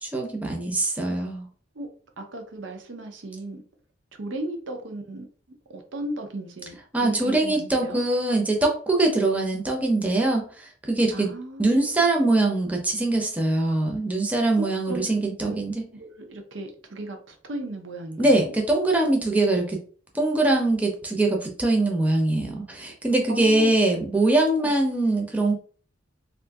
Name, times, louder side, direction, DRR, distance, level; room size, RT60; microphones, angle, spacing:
voice 1, 0.0-1.5 6.9-11.3 11.6-15.8 18.2-19.8 20.1-25.5, right 2 dB, 10° right, 0.6 m, -23 dB
voice 2, 2.2-3.6 4.2-5.3 5.7-8.0 11.1-12.0 14.5-15.6 15.9-18.5 23.3-23.7 24.6-24.7, right 1 dB, 80° right, 0.7 m, -36 dB
2.6 x 2.5 x 3.4 m
head